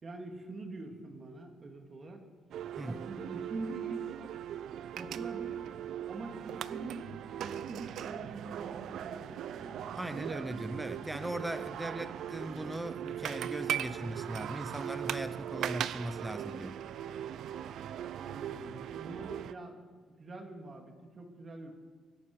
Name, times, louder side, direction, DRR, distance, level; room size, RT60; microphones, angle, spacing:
voice 1, 0.0-2.3 2.8-4.2 5.0-5.7 6.1-9.9 18.2-21.7, right 2 dB, 40° right, 3 dB, 2.8 m, -45 dB
sound 1, 2.5-19.5, right 10 dB, 75° right, 0.5 m, -39 dB
voice 2, 9.9-16.8, right 1 dB, 10° right, 12 dB, 0.8 m, -39 dB
24.5 x 12.0 x 4.9 m, 1.5 s
cardioid pair, 90°, 0 cm